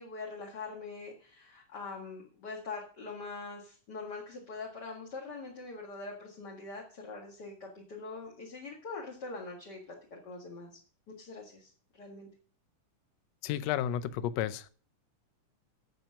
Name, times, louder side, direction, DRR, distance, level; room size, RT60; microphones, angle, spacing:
voice 1, 0.0-10.8 11.1-12.3, left 3 dB, 35° left, -1 dB, 2.1 m, -43 dB
voice 2, 13.4-14.7, left 11 dB, 75° left, 14 dB, 1.6 m, -32 dB
16.5 x 6.1 x 5.7 m, 0.42 s
omnidirectional pair, 3.7 m